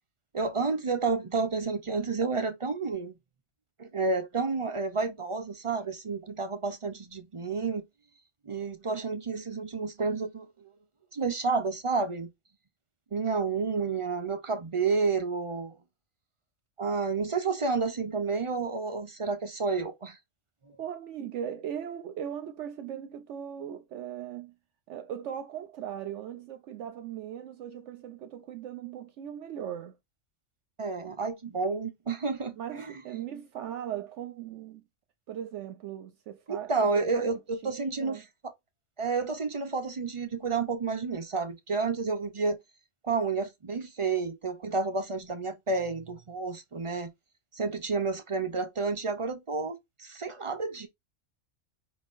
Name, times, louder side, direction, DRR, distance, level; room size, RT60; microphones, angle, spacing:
voice 1, 0.3-3.1 3.8-7.8 8.5-10.7 11.1-12.3 13.1-15.8 16.8-20.2 20.7-20.8 30.8-33.0 36.5-38.2 39.0-42.6 43.0-47.1 47.5-50.9, right 4 dB, 45° right, 0.4 m, -30 dB
voice 2, 20.8-24.5 24.9-30.0 32.6-34.8 35.3-38.2, right 9 dB, 70° right, 0.9 m, -39 dB
5.2 x 3.6 x 2.5 m
omnidirectional pair, 1.3 m